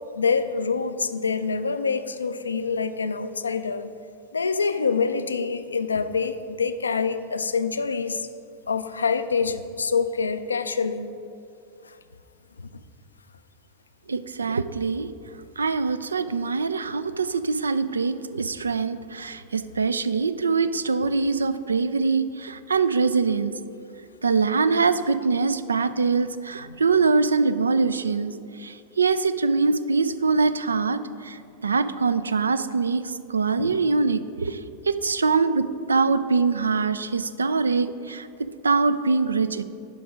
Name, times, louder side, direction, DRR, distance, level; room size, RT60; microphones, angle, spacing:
voice 1, 0.1-3.9 4.3-8.3 8.7-11.1 12.6-12.7 33.6-33.7, left 5 dB, 75° left, 11 dB, 0.4 m, -26 dB
voice 2, 14.1-15.1 15.6-23.5 24.2-34.6 34.9-38.3 38.6-39.6, right 4 dB, 75° right, 14 dB, 0.3 m, -23 dB
10.5 x 5.2 x 4.9 m, 2.5 s
figure-of-eight pair, 90°, 0 cm